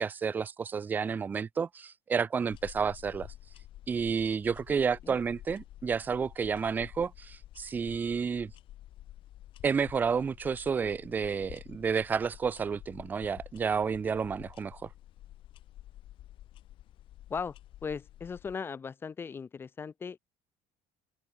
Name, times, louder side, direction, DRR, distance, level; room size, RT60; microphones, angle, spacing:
voice 1, 0.0-3.3 3.9-8.5 9.6-14.9, right 6 dB, 15° right, 0.4 m, -30 dB
sound 1, 2.5-18.5, left 13 dB, 40° left, 7.3 m, -50 dB
voice 2, 17.8-20.2, left 5 dB, 15° left, 1.4 m, -37 dB
open air
cardioid pair, 180°, 13 cm